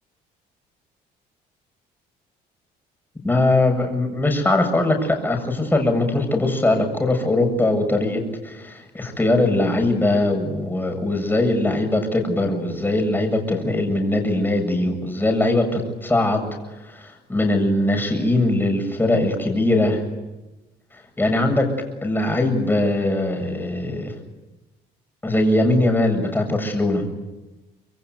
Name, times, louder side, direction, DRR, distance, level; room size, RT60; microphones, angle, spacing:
voice 1, 3.2-16.5 16.8-20.0 21.2-21.7 22.0-24.1 25.2-27.0, left 2 dB, 10° left, 4 dB, 7.6 m, -21 dB
26.5 x 23.0 x 9.5 m, 1.1 s
cardioid pair, 110°, 17 cm